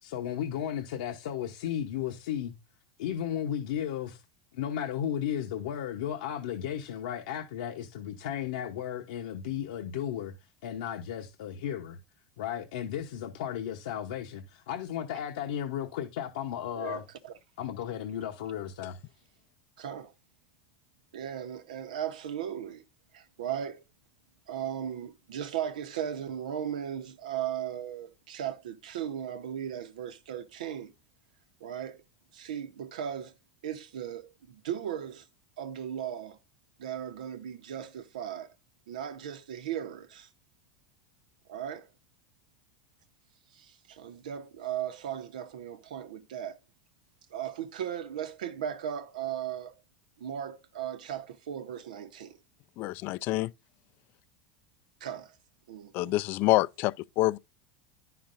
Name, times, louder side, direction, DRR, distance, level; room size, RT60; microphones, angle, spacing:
voice 1, 0.0-2.5 3.0-4.2 4.5-10.3 10.6-12.0 12.4-17.0 17.6-19.0, left 10 dB, 80° left, 0.9 m, -34 dB
voice 2, 16.7-17.3 19.8-20.1 21.1-22.8 23.1-23.8 24.5-30.9 31.6-32.0 32.3-33.3 33.6-35.3 35.6-36.4 36.8-38.5 38.9-40.3 41.5-41.9 43.5-46.6 47.3-49.7 50.2-52.4 55.0-55.3 55.7-56.1, right 9 dB, 80° right, 0.9 m, -37 dB
voice 3, 52.8-53.5 55.9-57.4, left 18 dB, 55° left, 0.4 m, -27 dB
10.0 x 5.7 x 2.6 m
hypercardioid pair, 95°, 4 cm